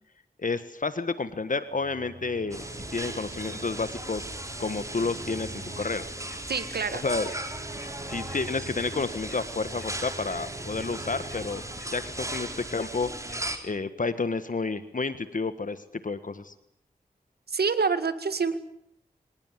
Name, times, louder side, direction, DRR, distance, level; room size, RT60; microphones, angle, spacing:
voice 1, 0.4-2.6 2.9-4.3 4.6-6.1 7.0-7.3 8.1-11.6 11.9-13.1 13.6-16.5, left 4 dB, 55° left, 12 dB, 1.5 m, -30 dB
sound 1, 1.7-13.0, right 2 dB, 55° right, 4.2 m, -45 dB
sound 2, 2.5-13.6, right 1 dB, 20° right, 4.0 m, -37 dB
sound 3, 5.8-5.9 6.3-6.4 6.8-6.9 7.3-7.4 7.8-7.9 8.3-8.4 8.8-8.9 9.3-9.4 9.8-9.9 10.3-10.4 10.8-10.9 11.3-11.4 11.8-11.9 12.3-12.4 12.8-12.9 13.3-13.4, left 3 dB, 85° left, 2.9 m, -49 dB
voice 2, 6.5-7.0 17.5-18.6, right 5 dB, 85° right, 12 dB, 2.0 m, -26 dB
25.5 x 18.5 x 9.8 m, 0.72 s
wide cardioid pair, 60°, 16 cm